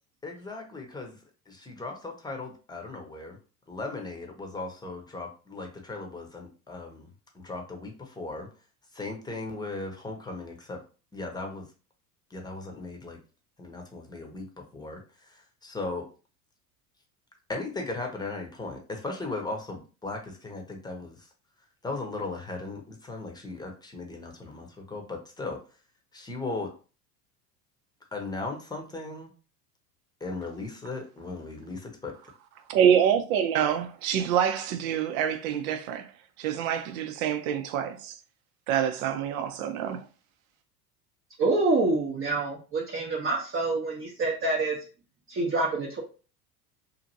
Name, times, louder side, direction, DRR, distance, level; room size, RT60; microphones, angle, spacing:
voice 1, 0.2-1.2 1.5-3.4 3.7-7.1 7.3-8.5 8.9-10.8 11.1-11.7 12.3-13.2 13.6-16.1 17.5-21.3 21.8-25.6 26.1-26.7 28.1-29.3 30.2-32.1, left 3 dB, 10° left, 0.8 m, -37 dB
voice 2, 32.7-36.1 36.4-38.1 38.7-40.0, right 9 dB, 60° right, 0.7 m, -26 dB
voice 3, 41.4-44.8 45.3-46.0, right 3 dB, 30° right, 0.8 m, -26 dB
2.8 x 2.6 x 2.7 m
hypercardioid pair, 80°, 46 cm